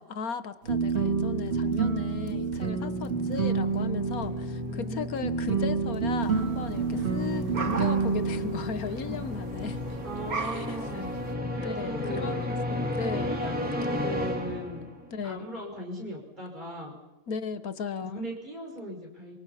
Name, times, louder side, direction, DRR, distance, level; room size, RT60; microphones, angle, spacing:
voice 1, 0.0-9.8 10.4-11.0 11.6-13.4 15.1-15.5 17.3-18.2, left 5 dB, 85° left, 12 dB, 1.7 m, -36 dB
sound 1, 0.6-9.9, right 5 dB, 50° right, 2.5 m, -29 dB
sound 2, 2.5-15.2, left 1 dB, 5° right, 3.0 m, -35 dB
voice 2, 4.6-5.7 6.9-7.3 8.8-9.3 10.0-11.2 11.5-12.3 13.2-14.9 15.2-17.0 18.0-19.4, equal, 30° right, -1 dB, 6.1 m, -38 dB
sound 3, 6.2-11.3, right 4 dB, 85° right, 2.4 m, -39 dB
27.0 x 24.5 x 5.7 m, 1.0 s
omnidirectional pair, 1.5 m